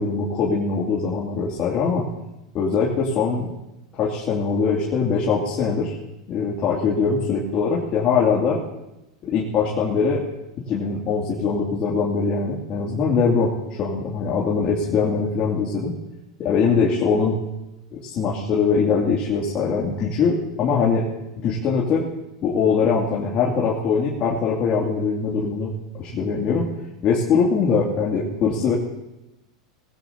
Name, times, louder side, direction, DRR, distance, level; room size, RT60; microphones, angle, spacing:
voice 1, 0.0-2.0 2.5-3.5 3.9-6.0 6.3-8.6 9.2-10.2 10.7-13.5 13.8-15.9 16.4-17.4 17.9-21.1 21.4-22.1 22.4-26.7 27.0-28.7, left 5 dB, 40° left, -5 dB, 2.6 m, -22 dB
21.0 x 16.0 x 2.9 m, 0.94 s
hypercardioid pair, 100°, 3 cm